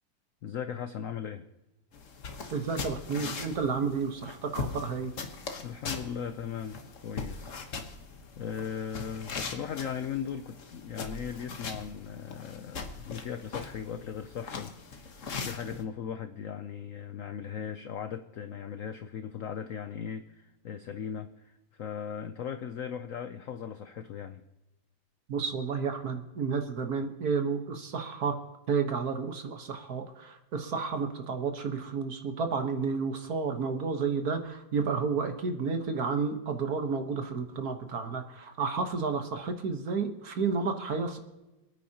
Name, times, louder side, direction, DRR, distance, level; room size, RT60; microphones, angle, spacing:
voice 1, 0.4-1.5 5.6-7.6 8.3-14.7 15.4-24.4, left 8 dB, 80° left, 9 dB, 0.7 m, -38 dB
sound 1, 1.9-15.8, left 4 dB, 45° left, 1.4 m, -40 dB
voice 2, 2.5-5.1 25.3-28.4 28.7-41.2, right 5 dB, 50° right, 6 dB, 1.6 m, -31 dB
27.5 x 9.3 x 2.9 m, 1.0 s
omnidirectional pair, 2.2 m